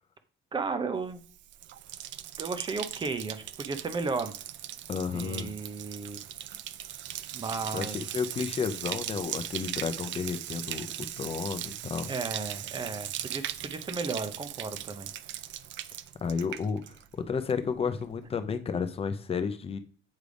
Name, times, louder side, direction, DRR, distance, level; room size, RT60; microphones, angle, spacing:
voice 1, 0.5-1.2 2.4-4.3 5.1-6.3 7.3-8.0 12.1-15.1, right 4 dB, 20° right, 10 dB, 0.7 m, -34 dB
Bathtub (filling or washing), 1.1-17.2 17.5-18.0, right 12 dB, 60° right, 0.4 m, -39 dB
voice 2, 4.9-5.5 7.7-12.1 16.2-19.8, left 6 dB, 30° left, 9 dB, 0.6 m, -32 dB
8.4 x 3.3 x 5.1 m, 0.42 s
cardioid pair, 165°, 21 cm